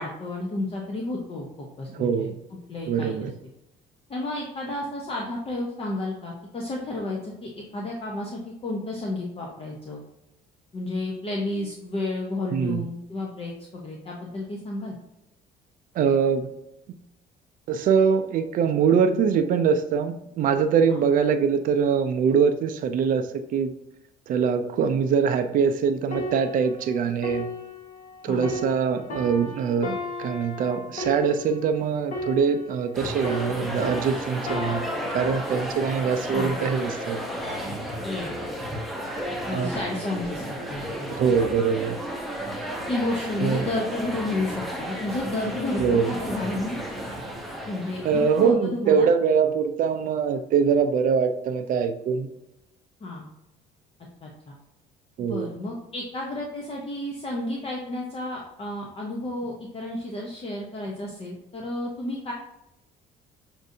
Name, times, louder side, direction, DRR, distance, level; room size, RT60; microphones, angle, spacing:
voice 1, 0.0-2.3 2.7-3.3 4.1-10.0 10.7-15.0 20.9-21.0 28.3-28.5 36.3-36.6 38.0-38.3 39.5-41.2 42.9-46.8 47.7-49.1 53.0-53.3 54.2-54.6 55.2-62.3, left 2 dB, 35° left, -1 dB, 0.7 m, -31 dB
voice 2, 1.9-2.3 2.9-3.3 12.5-12.8 15.9-16.5 17.7-23.7 24.3-27.5 28.2-34.8 35.1-37.2 39.5-39.7 41.1-42.0 43.4-43.7 45.8-46.1 48.0-52.3 55.2-55.5, right 6 dB, 55° right, 8 dB, 0.4 m, -23 dB
sound 1, 26.1-33.0 33.2-36.8 37.5-37.7, left 2 dB, 50° left, 1.2 m, -35 dB
sound 2, 32.9-48.5, equal, ahead, 0.7 m, -33 dB
6.2 x 2.6 x 2.6 m, 0.87 s
cardioid pair, 110°, 17 cm